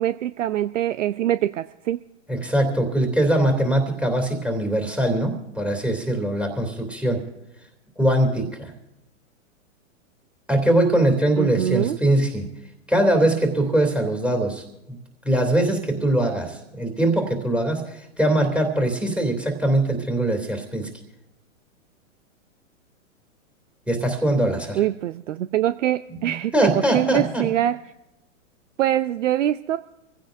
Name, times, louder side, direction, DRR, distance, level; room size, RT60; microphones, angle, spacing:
voice 1, 0.0-2.0 11.4-12.0 24.7-27.8 28.8-29.8, right 12 dB, 65° right, 13 dB, 0.6 m, -24 dB
voice 2, 2.3-7.2 8.0-8.7 10.5-12.5 12.9-15.0 15.2-20.9 23.9-24.8 26.1-27.4, right 1 dB, 5° right, 4 dB, 2.8 m, -22 dB
26.0 x 16.0 x 2.6 m, 0.92 s
hypercardioid pair, 125°, 40 cm